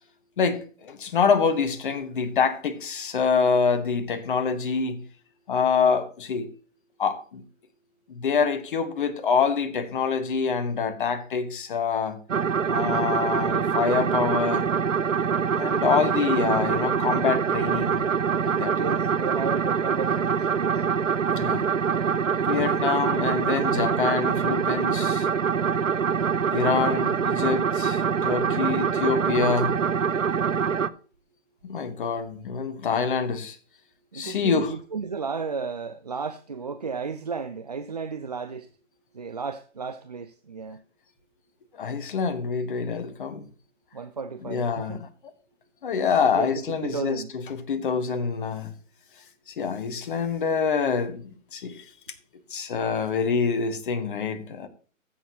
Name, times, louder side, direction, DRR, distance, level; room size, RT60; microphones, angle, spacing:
voice 1, 0.4-5.0 5.5-6.5 7.0-7.4 8.1-12.2 12.7-14.7 15.5-18.0 18.4-18.8 21.4-21.7 22.4-25.3 26.5-29.8 31.6-33.6 34.1-34.7 41.7-43.5 44.5-45.1 45.8-47.2 47.5-48.7 49.5-51.2 51.5-51.8 52.5-54.7, left 5 dB, 40° left, 1.5 m, -26 dB
sound 1, 12.3-30.9, right 6 dB, 75° right, 0.8 m, -24 dB
voice 2, 18.7-20.8 34.1-38.7 39.1-40.8 43.9-45.0 46.2-47.3, right 5 dB, 35° right, 0.4 m, -34 dB
15.0 x 6.8 x 3.0 m
figure-of-eight pair, 140°, 39 cm